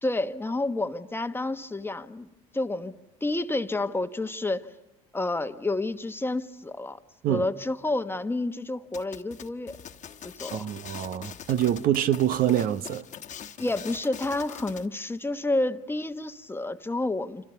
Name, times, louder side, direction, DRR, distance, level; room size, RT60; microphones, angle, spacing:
voice 1, 0.0-2.3 2.5-2.9 3.2-4.7 5.1-7.0 7.3-9.8 10.2-10.7 13.6-17.4, left 2 dB, 15° left, 1.2 m, -29 dB
sound 1, 8.9-14.9, left 9 dB, 45° left, 1.4 m, -43 dB
voice 2, 10.5-13.0, right 11 dB, 55° right, 0.9 m, -25 dB
29.5 x 26.0 x 6.9 m
hypercardioid pair, 70°, 17 cm